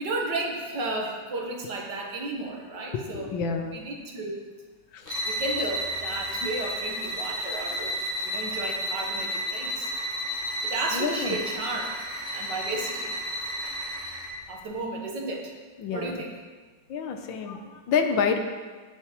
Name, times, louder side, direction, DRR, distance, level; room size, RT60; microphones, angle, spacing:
voice 1, 0.0-3.3 3.7-4.4 5.2-8.0 8.2-9.9 10.6-11.9 12.3-13.1 14.5-15.5 15.9-16.3, right 2 dB, 65° right, 0 dB, 1.8 m, -33 dB
voice 2, 2.9-3.8 4.9-5.2 10.9-11.4 15.8-16.2 16.9-18.4, left 6 dB, 75° left, 6 dB, 1.6 m, -28 dB
sound 1, 5.0-14.4, equal, 80° right, 3.6 m, -32 dB
16.0 x 6.9 x 3.1 m, 1.4 s
omnidirectional pair, 2.1 m